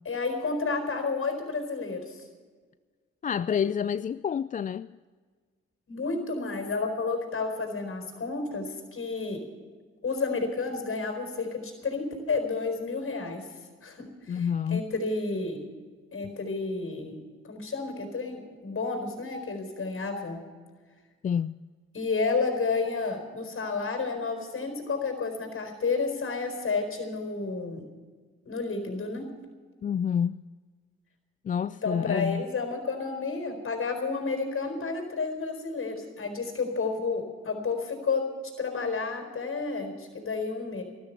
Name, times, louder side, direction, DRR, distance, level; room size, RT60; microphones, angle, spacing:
voice 1, 0.0-2.3 5.9-9.4 10.0-13.5 13.8-14.5 14.7-15.6 16.1-17.2 17.5-20.4 21.9-27.8 28.4-29.3 31.8-38.3 38.6-40.8, left 4 dB, 45° left, 4.4 m, -31 dB
voice 2, 3.2-5.0 14.3-14.8 21.2-21.6 29.8-30.4 31.4-32.4, left 7 dB, 30° left, 0.3 m, -28 dB
13.5 x 13.0 x 7.0 m
supercardioid pair, 55°, 30 cm